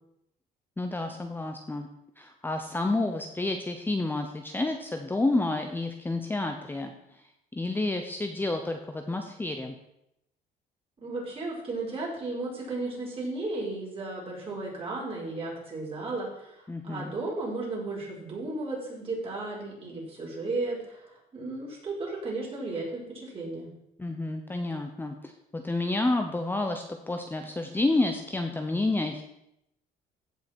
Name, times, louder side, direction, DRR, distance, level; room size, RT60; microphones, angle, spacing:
voice 1, 0.8-1.9 2.2-7.2 7.5-9.7 16.7-17.1 24.0-29.2, left 2 dB, 10° left, 5 dB, 0.8 m, -30 dB
voice 2, 11.0-23.7, right 2 dB, 35° right, -4 dB, 4.9 m, -34 dB
15.5 x 5.7 x 4.5 m, 0.81 s
cardioid pair, 110°, 17 cm